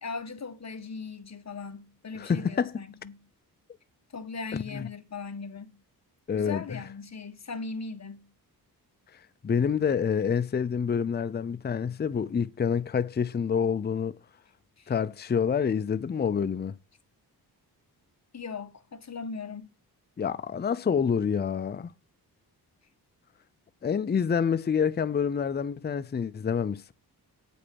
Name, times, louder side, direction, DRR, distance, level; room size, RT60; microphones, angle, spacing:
voice 1, 0.0-3.2 4.1-5.8 6.3-8.3 14.8-14.9 18.3-19.7, left 4 dB, 40° left, 1.7 m, -38 dB
voice 2, 2.1-2.8 4.5-4.9 6.3-6.8 9.1-14.2 14.9-16.7 20.2-21.9 23.8-26.9, left 7 dB, 25° left, 0.5 m, -27 dB
8.4 x 5.5 x 6.3 m
cardioid pair, 85°, 39 cm